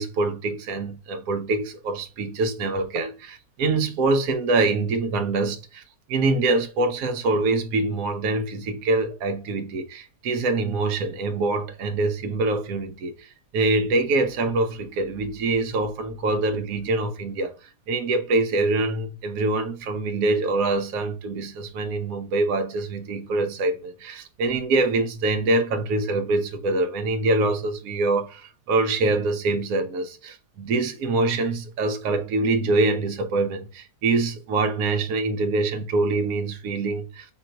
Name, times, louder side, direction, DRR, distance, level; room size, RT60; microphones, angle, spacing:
voice 1, 0.0-5.8 6.1-17.5 17.9-37.3, right 3 dB, 65° right, 1.1 m, -24 dB
3.8 x 3.0 x 4.4 m
omnidirectional pair, 1.8 m